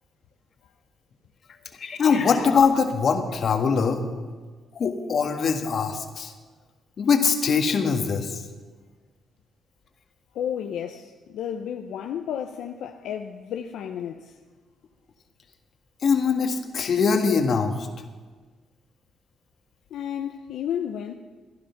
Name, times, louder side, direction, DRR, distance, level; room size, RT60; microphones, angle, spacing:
voice 1, 1.8-4.0 4.8-6.3 7.0-8.4 16.0-17.7, left 5 dB, 55° left, 1.7 m, -22 dB
voice 2, 10.3-14.4 19.9-21.2, left 9 dB, 80° left, 0.7 m, -32 dB
16.0 x 10.5 x 5.9 m
cardioid pair, 90°, 0 cm